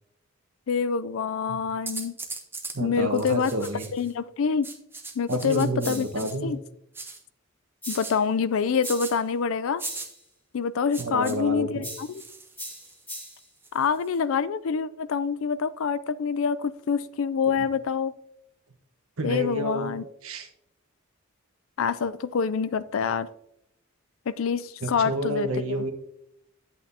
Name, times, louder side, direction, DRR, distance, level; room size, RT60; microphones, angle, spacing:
voice 1, 0.7-2.2 2.8-3.5 3.9-4.7 5.2-6.0 6.4-6.6 7.9-9.8 10.5-12.2 13.7-18.1 19.2-20.0 21.8-23.3 24.3-25.5, left 6 dB, 65° left, 15 dB, 0.4 m, -26 dB
sound 1, 1.9-2.8 3.1-4.1 4.6-6.4 6.9-7.2 7.9-8.1 8.8-9.1 9.8-10.1 10.9-11.3 12.1-13.0 13.6-14.2, right 3 dB, 10° right, 0.7 m, -39 dB
voice 2, 2.7-3.9 5.3-6.5 11.0-11.9 19.2-19.9 20.2-20.5 24.8-25.9, right 1 dB, 70° right, 5 dB, 1.3 m, -29 dB
sound 2, 5.8-6.3 7.8-8.2 8.8-9.2 9.8-10.2 11.8-12.2 12.6-13.5, equal, 10° left, 1.7 m, -40 dB
10.5 x 8.4 x 2.8 m, 0.81 s
head